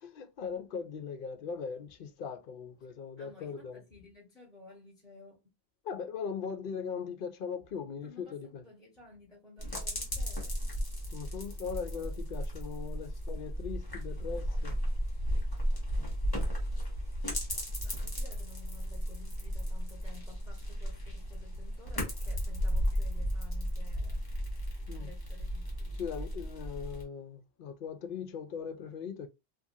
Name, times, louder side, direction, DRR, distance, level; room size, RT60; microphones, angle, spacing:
voice 1, 0.0-3.8 5.8-8.6 11.1-14.8 24.9-25.1 25.9-29.3, left 6 dB, 60° left, 0.6 m, -39 dB
voice 2, 3.2-5.4 8.0-10.7 17.8-24.2 24.9-26.0, left 4 dB, ahead, 1.3 m, -55 dB
sound 1, 9.6-27.0, equal, 20° left, 1.0 m, -34 dB
2.7 x 2.5 x 2.6 m
omnidirectional pair, 1.1 m